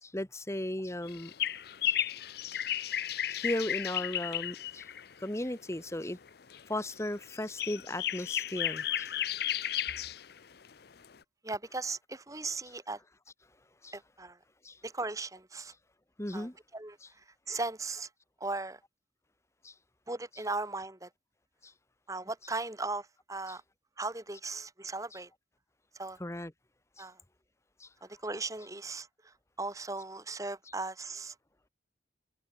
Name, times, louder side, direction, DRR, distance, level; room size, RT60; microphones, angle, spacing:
voice 1, 0.0-1.3 1.8-2.0 2.5-2.6 3.3-4.8 5.2-6.2 6.7-9.1 9.7-9.8 13.8-13.9 14.6-14.8 16.2-16.5 19.6-19.7 21.6-21.7 26.2-26.5 27.0-27.1 27.8-27.9, left 1 dB, 15° left, 1.2 m, -36 dB
sound 1, 1.0-5.1 6.3-6.6 7.0-10.4 10.6-10.7 11.0-11.1, left 11 dB, 55° left, 0.6 m, -34 dB
voice 2, 11.4-13.0 13.9-14.4 14.8-15.7 16.3-18.1 18.4-18.8 20.1-21.1 22.1-23.6 24.0-25.3 25.9-26.2 27.0-27.2 28.0-31.3, right 3 dB, 20° right, 1.8 m, -38 dB
head